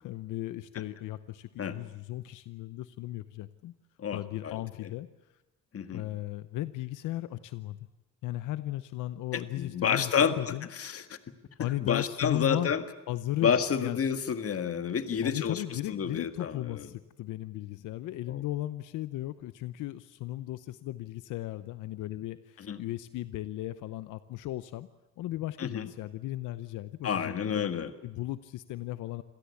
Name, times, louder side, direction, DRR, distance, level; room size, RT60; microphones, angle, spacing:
voice 1, 0.0-3.7 4.1-5.1 5.9-7.8 8.2-10.7 11.6-12.7 13.1-14.0 15.2-24.9 25.2-27.7 28.0-29.2, left 15 dB, 85° left, 13 dB, 0.8 m, -36 dB
voice 2, 4.0-4.9 5.7-6.0 9.3-11.2 11.8-12.8 13.4-16.9 18.3-18.4 22.6-22.8 25.6-25.9 27.0-27.9, left 7 dB, 50° left, 10 dB, 1.8 m, -30 dB
26.5 x 17.0 x 8.4 m, 1.1 s
cardioid pair, 90°, 30 cm